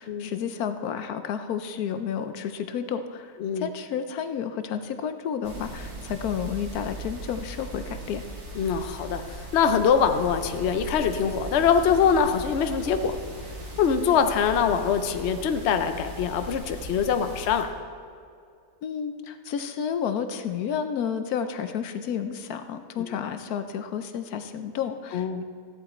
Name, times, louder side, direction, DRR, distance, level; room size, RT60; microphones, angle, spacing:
voice 1, 0.0-8.2 18.8-25.4, left 7 dB, 75° left, 9 dB, 1.1 m, -31 dB
sound 1, 5.4-17.6, right 1 dB, 50° right, 1.9 m, -38 dB
voice 2, 8.6-9.2 9.5-13.1 13.8-17.7 25.1-25.4, left 7 dB, 55° left, 8 dB, 0.8 m, -23 dB
14.5 x 10.5 x 4.3 m, 2.3 s
omnidirectional pair, 1.6 m